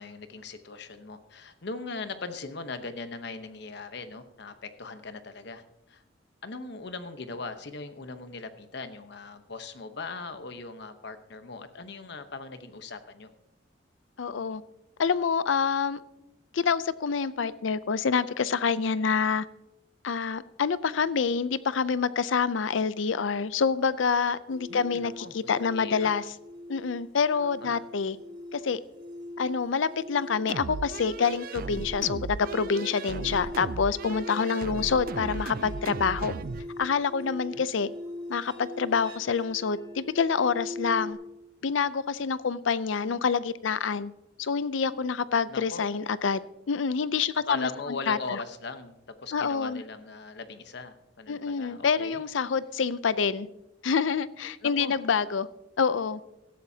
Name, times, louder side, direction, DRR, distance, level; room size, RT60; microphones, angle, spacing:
voice 1, 0.0-6.0 6.4-13.3 24.7-26.1 27.4-27.8 37.2-37.6 45.5-45.8 47.5-52.2 54.6-55.0, left 3 dB, 60° left, 9 dB, 1.0 m, -39 dB
voice 2, 14.2-14.6 15.0-16.0 16.5-19.5 20.0-26.2 26.7-28.2 28.5-28.8 29.4-36.4 36.8-37.9 38.3-41.2 41.6-44.1 44.4-46.4 46.7-47.7 48.1-48.4 49.3-49.8 51.3-53.5 53.8-55.5 55.8-56.2, left 5 dB, 80° left, 16 dB, 0.5 m, -27 dB
sound 1, 24.5-41.1, left 2 dB, 25° right, 1.7 m, -41 dB
sound 2, 30.5-36.7, right 4 dB, 50° right, 0.4 m, -37 dB
17.0 x 13.0 x 2.8 m, 0.92 s
head